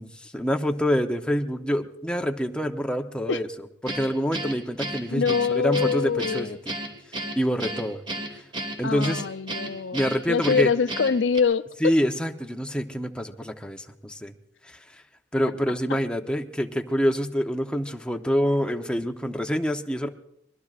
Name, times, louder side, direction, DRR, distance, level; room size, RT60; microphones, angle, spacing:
voice 1, 0.0-3.5 3.8-6.8 7.4-8.0 8.3-8.4 8.8-9.3 9.9-10.7 11.8-14.3 14.6-14.8 15.3-20.1, equal, 5° left, 4 dB, 0.8 m, -26 dB
Guitar, 3.9-11.4, right 1 dB, 25° right, 1.7 m, -34 dB
voice 2, 5.1-6.6 8.8-11.6, left 5 dB, 80° left, 13 dB, 0.5 m, -24 dB
25.5 x 22.0 x 2.5 m, 0.80 s
head